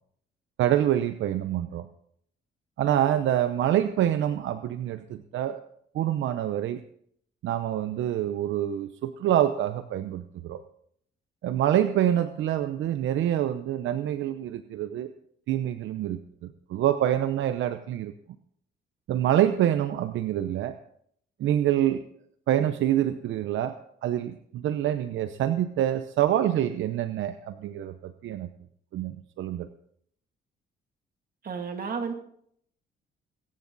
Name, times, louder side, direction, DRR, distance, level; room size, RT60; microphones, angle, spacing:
voice 1, 0.6-1.9 2.8-5.6 5.9-6.8 7.4-10.6 11.4-15.1 15.5-18.1 19.1-20.7 21.4-22.0 22.5-23.7 24.0-28.5 28.9-29.7, right 11 dB, 75° right, 11 dB, 0.7 m, -26 dB
voice 2, 31.4-32.1, right 5 dB, 45° right, 4 dB, 2.5 m, -32 dB
22.0 x 9.6 x 4.0 m, 0.67 s
cardioid pair, 90°, 20 cm